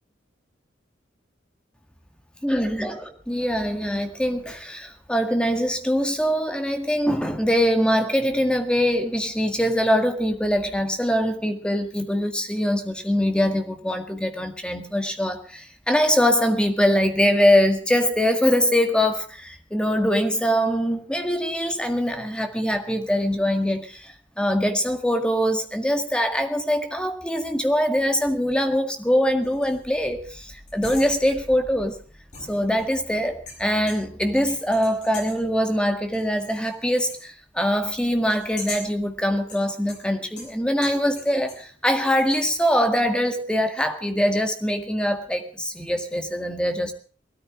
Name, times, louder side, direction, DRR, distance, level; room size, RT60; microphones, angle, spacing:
voice 1, 2.4-32.0 32.5-46.9, equal, 5° left, 1.9 m, -23 dB
sound 1, 29.4-29.9 30.7-31.5 32.3-33.0 33.5-34.2 34.5-35.5 36.1-36.7 37.0-37.3 38.3-39.0 39.5-41.7 41.9-42.6, left 3 dB, 40° left, 7.6 m, -41 dB
19.0 x 13.5 x 4.9 m
head